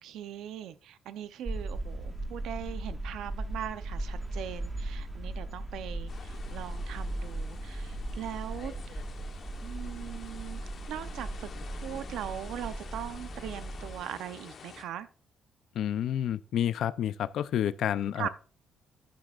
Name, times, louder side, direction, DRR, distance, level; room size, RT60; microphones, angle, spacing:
voice 1, 0.0-9.0 9.6-10.6 10.9-15.1 18.2-18.3, right 11 dB, 85° right, 0.7 m, -40 dB
sound 1, 1.4-14.0, right 1 dB, 15° right, 1.5 m, -38 dB
sound 2, 6.1-14.8, left 6 dB, 55° left, 1.1 m, -49 dB
voice 2, 15.7-18.3, left 10 dB, 75° left, 0.4 m, -29 dB
9.7 x 9.2 x 2.4 m
cardioid pair, 90°, 0 cm